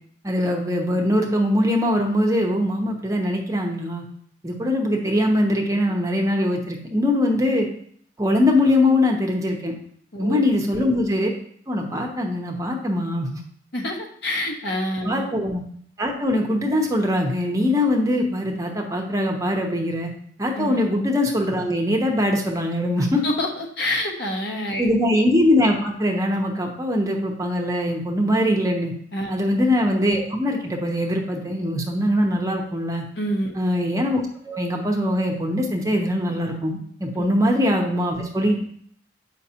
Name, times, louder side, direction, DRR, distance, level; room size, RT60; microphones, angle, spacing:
voice 1, 0.2-4.0 4.4-7.7 8.2-9.7 10.2-11.3 11.7-13.4 15.0-15.6 16.0-20.1 20.4-23.2 24.8-28.9 29.3-33.0 33.5-38.6, left 1 dB, 20° right, 0 dB, 0.8 m, -22 dB
voice 2, 10.1-10.4 13.7-15.3 20.5-20.8 23.2-24.9 29.1-29.3 33.2-33.5 37.2-37.3, left 1 dB, 65° left, 0 dB, 1.1 m, -27 dB
8.0 x 5.2 x 2.8 m, 0.62 s
head